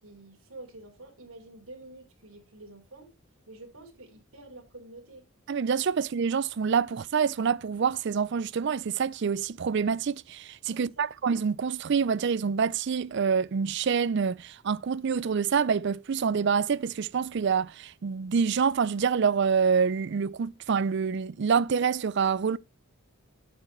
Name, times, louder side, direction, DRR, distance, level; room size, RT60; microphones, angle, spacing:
voice 1, 0.0-3.1 3.5-5.2 10.7-11.1, right 2 dB, 75° right, 3.8 m, -48 dB
voice 2, 5.5-22.6, right 6 dB, 55° right, 0.4 m, -26 dB
9.0 x 8.5 x 3.1 m
head